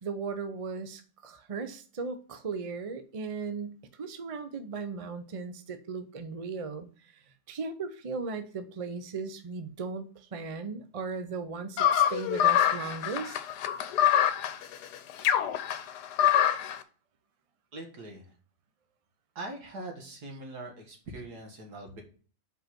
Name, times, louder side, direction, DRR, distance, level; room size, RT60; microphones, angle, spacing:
voice 1, 0.0-13.4, right 4 dB, 45° right, 9 dB, 0.4 m, -37 dB
sound 1, 11.8-16.8, left 10 dB, 90° left, 1.3 m, -25 dB
voice 2, 17.7-18.3 19.4-22.0, right 2 dB, 75° right, 2 dB, 2.3 m, -42 dB
5.4 x 4.8 x 5.9 m, 0.39 s
omnidirectional pair, 1.7 m